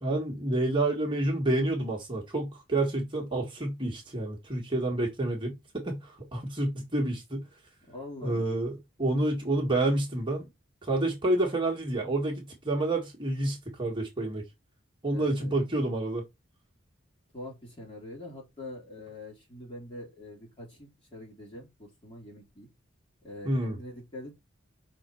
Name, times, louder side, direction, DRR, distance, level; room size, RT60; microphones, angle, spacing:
voice 1, 0.0-7.4 8.2-10.4 10.8-14.4 15.0-16.2 23.4-23.8, right 2 dB, 25° right, 1.8 m, -29 dB
voice 2, 7.9-8.6 15.1-15.5 17.3-22.7 23.2-24.4, left 1 dB, 25° left, 3.4 m, -44 dB
5.9 x 4.2 x 4.5 m
head